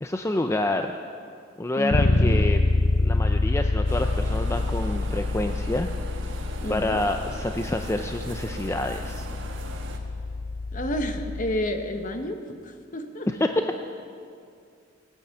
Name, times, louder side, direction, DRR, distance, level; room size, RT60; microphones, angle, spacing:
voice 1, 0.0-1.0 1.6-2.6 3.0-5.9 6.7-9.3 13.3-13.8, left 1 dB, 15° left, 5 dB, 0.4 m, -27 dB
voice 2, 1.8-2.4 6.6-7.0 10.7-13.3, left 1 dB, 40° left, 6 dB, 1.1 m, -30 dB
Bass guitar, 1.9-11.7, left 2 dB, 70° left, 0.9 m, -26 dB
sound 1, 3.9-10.0, right 2 dB, 65° right, 1.5 m, -40 dB
17.0 x 8.4 x 8.5 m, 2.3 s
head